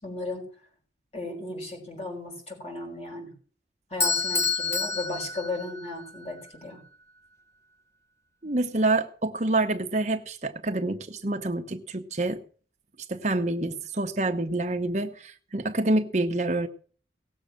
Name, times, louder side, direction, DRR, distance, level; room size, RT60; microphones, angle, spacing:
voice 1, 0.0-0.4 1.1-3.3 3.9-6.8, left 2 dB, 35° left, 1 dB, 6.1 m, -35 dB
Bell / Doorbell, 4.0-6.1, left 4 dB, 15° left, 0.8 m, -28 dB
voice 2, 8.4-12.4 13.1-16.7, right 2 dB, 40° right, 5 dB, 1.0 m, -27 dB
18.0 x 7.4 x 6.6 m, 0.43 s
head